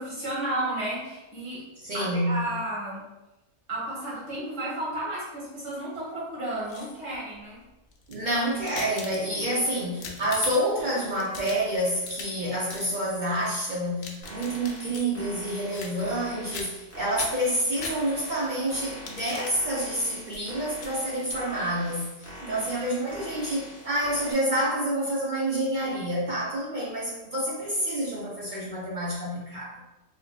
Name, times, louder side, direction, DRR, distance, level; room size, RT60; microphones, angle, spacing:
voice 1, 0.0-1.6 1.9-3.0 3.7-7.6 9.5-9.6 22.4-22.7, right 1 dB, 70° right, -7 dB, 1.8 m, -33 dB
voice 2, 1.8-2.5 8.1-29.8, right 1 dB, 50° right, -5 dB, 0.6 m, -28 dB
sound 1, 6.5-7.2 7.9-9.5 9.9-10.8 11.1-12.4 12.7-12.9 13.8-15.1 15.7-16.2 16.5-16.9 17.2-18.4 18.9-19.6 20.3-20.4 20.8-20.9 21.2-21.4, left 4 dB, 85° left, 1.0 m, -41 dB
sound 2, 14.2-24.3, equal, 15° left, 0.7 m, -44 dB
4.3 x 2.5 x 2.3 m, 1.0 s
omnidirectional pair, 1.4 m